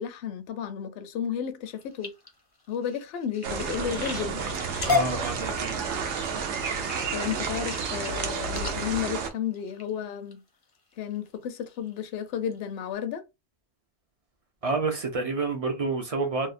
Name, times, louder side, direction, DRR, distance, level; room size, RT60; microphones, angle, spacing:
voice 1, 0.0-2.1 2.7-4.4 7.1-10.4 11.0-13.2, left 8 dB, 65° left, 0.7 m, -32 dB
sound 1, 1.6-10.3 10.9-11.3 11.7-12.1 12.5-12.6 12.9-13.0, left 4 dB, 30° left, 0.4 m, -34 dB
sound 2, 3.4-9.3, right 5 dB, 80° right, 0.9 m, -31 dB
voice 2, 4.8-5.8 14.6-16.5, right 3 dB, 55° right, 0.4 m, -28 dB
2.7 x 2.0 x 2.4 m
omnidirectional pair, 1.2 m